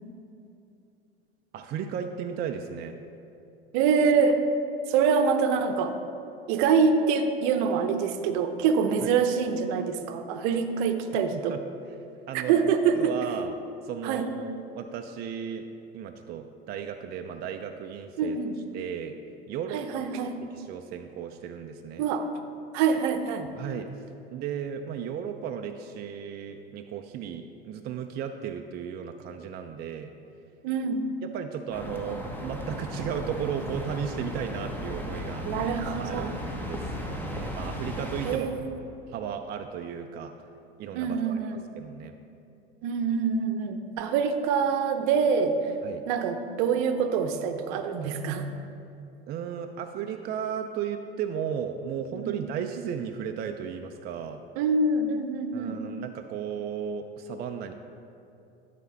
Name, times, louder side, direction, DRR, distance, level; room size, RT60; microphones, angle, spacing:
voice 1, 1.5-2.9 9.0-9.1 11.3-11.6 12.3-12.6 13.0-13.5 13.8-15.7 15.9-18.4 18.7-19.1 19.5-20.0 20.5-22.1 23.6-24.0 24.3-30.1 31.2-35.6 36.0-38.5 39.1-40.3 40.8-42.2 45.8-46.0 49.3-54.4 55.5-57.7, right 8 dB, 30° right, 5 dB, 0.4 m, -35 dB
voice 2, 3.7-4.4 4.9-5.9 6.5-11.6 12.3-13.2 14.0-14.3 18.2-18.6 19.7-20.4 22.0-22.3 22.7-23.5 30.6-31.0 35.4-36.4 38.2-38.8 40.9-41.6 42.8-45.7 46.1-48.5 52.1-52.4 54.6-55.8, right 5 dB, 55° right, 7 dB, 0.8 m, -25 dB
sound 1, 31.7-38.4, left 1 dB, 5° left, 1.1 m, -35 dB
11.5 x 4.2 x 5.6 m, 2.7 s
figure-of-eight pair, 75°, 31 cm